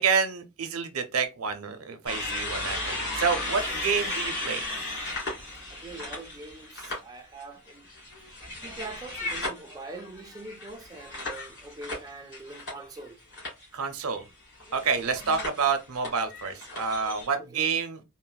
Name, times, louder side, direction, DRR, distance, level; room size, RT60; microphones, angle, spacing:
voice 1, 0.0-4.6 13.7-14.3 14.7-18.0, right 5 dB, 80° right, 0.6 m, -28 dB
sound 1, 2.1-7.0 7.4-13.1 13.3-13.6 14.5-17.3, left 2 dB, 55° left, 1.9 m, -35 dB
sound 2, 2.6-5.3, left 2 dB, 25° left, 0.7 m, -42 dB
voice 2, 5.7-7.9 8.6-13.2 15.1-15.2 17.5-17.6, right 2 dB, 20° right, 0.4 m, -43 dB
3.9 x 2.1 x 2.2 m
head